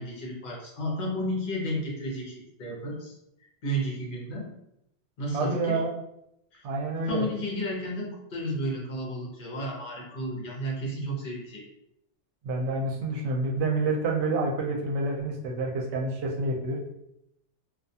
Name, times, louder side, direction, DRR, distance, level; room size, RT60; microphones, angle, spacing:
voice 1, 0.0-3.1 3.6-4.5 5.2-5.8 6.5-6.6 7.0-11.6, equal, 50° left, -3 dB, 0.8 m, -32 dB
voice 2, 5.3-5.9 6.6-7.3 12.4-16.8, right 2 dB, 70° right, 0 dB, 0.8 m, -28 dB
2.3 x 2.3 x 2.7 m, 0.81 s
omnidirectional pair, 1.2 m